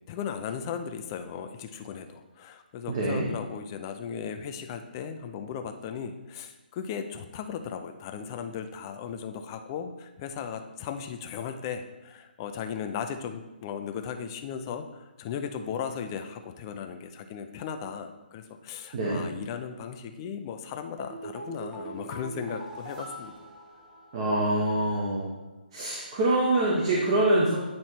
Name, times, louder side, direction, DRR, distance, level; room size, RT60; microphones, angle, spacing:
voice 1, 0.1-23.3, left 7 dB, 25° left, 7 dB, 0.4 m, -37 dB
voice 2, 2.9-3.3 18.9-19.2 24.1-25.3 25.7-27.6, right 1 dB, 30° right, -5 dB, 1.0 m, -25 dB
sound 1, 21.0-24.4 24.7-24.8, right 2 dB, 5° right, 0.8 m, -41 dB
8.9 x 3.1 x 4.3 m, 1.1 s
hypercardioid pair, 160°, 6 cm